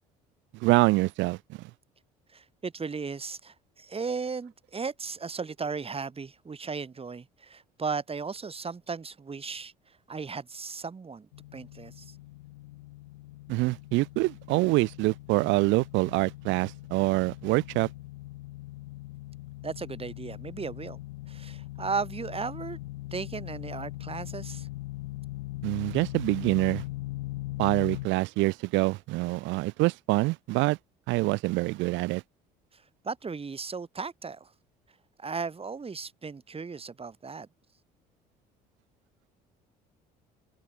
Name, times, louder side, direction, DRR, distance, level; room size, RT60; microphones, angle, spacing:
voice 1, 0.5-1.4 13.5-17.9 25.6-26.8 27.6-30.8 31.1-32.2, right 21 dB, 70° right, 1.3 m, -25 dB
voice 2, 2.3-9.7 10.1-12.1 19.6-21.0 21.3-22.8 23.1-24.7 32.7-34.5 35.2-37.5, right 5 dB, 30° right, 3.7 m, -36 dB
sound 1, 11.3-28.1, left 18 dB, 85° left, 1.9 m, -40 dB
hypercardioid pair, 65°, 20 cm